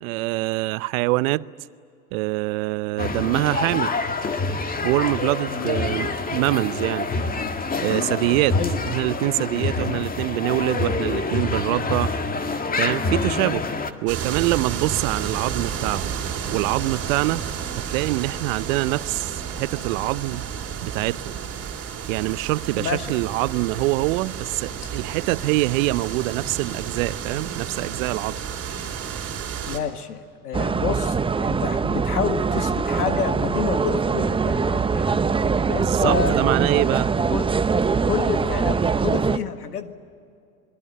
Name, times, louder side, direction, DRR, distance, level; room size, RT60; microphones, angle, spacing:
voice 1, 0.0-1.4 2.1-3.9 4.8-7.1 7.8-8.6 8.9-12.1 12.8-13.6 14.0-16.1 16.5-17.4 17.8-20.5 20.8-21.4 22.1-28.4 35.6-37.1, right 20 dB, 60° right, 0.8 m, -24 dB
sound 1, 3.0-13.9, left 3 dB, 20° left, 1.8 m, -26 dB
voice 2, 5.5-5.9 8.5-8.8 9.8-10.1 22.8-23.2 29.7-35.3 35.7-36.4 37.3-37.5 38.1-39.9, left 7 dB, 90° left, 1.7 m, -29 dB
sound 2, 14.1-29.8, right 7 dB, 35° right, 4.2 m, -31 dB
sound 3, 30.5-39.4, right 5 dB, 10° right, 0.7 m, -22 dB
26.5 x 21.5 x 9.7 m
hypercardioid pair, 90°, 44 cm